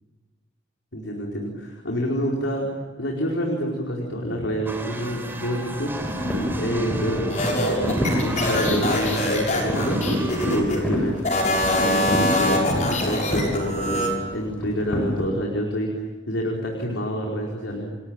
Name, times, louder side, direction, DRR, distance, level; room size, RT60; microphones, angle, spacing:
voice 1, 0.9-2.6 3.0-5.9 6.6-7.9 8.2-10.2 10.5-11.2 11.8-15.9 16.3-17.9, equal, 90° left, -1 dB, 4.8 m, -27 dB
sound 1, 4.7-10.6, right 1 dB, 10° right, 3.9 m, -32 dB
sound 2, 5.7-15.2, equal, 5° left, 6.6 m, -29 dB
sound 3, 7.3-10.8 11.2-14.1, left 1 dB, 40° left, 6.9 m, -24 dB
30.0 x 21.5 x 9.1 m, 1.3 s
head